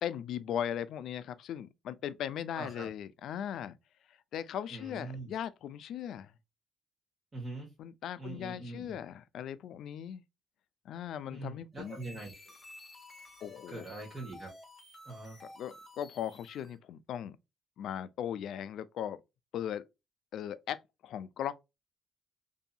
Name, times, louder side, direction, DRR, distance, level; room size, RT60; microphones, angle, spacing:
voice 1, 0.0-3.8 4.1-6.3 7.8-10.2 10.9-12.0 13.4-13.9 15.6-17.4 17.8-19.2 19.5-19.8 20.3-21.6, left 9 dB, 75° left, 0.3 m, -38 dB
voice 2, 2.5-2.9 4.7-5.3 7.3-7.7 8.2-9.0 11.3-12.3 13.7-14.5 15.0-15.4, right 2 dB, 30° right, 1.1 m, -42 dB
sound 1, 11.7-16.8, left 1 dB, 25° left, 1.1 m, -53 dB
2.7 x 2.6 x 2.2 m
cardioid pair, 90°, 0 cm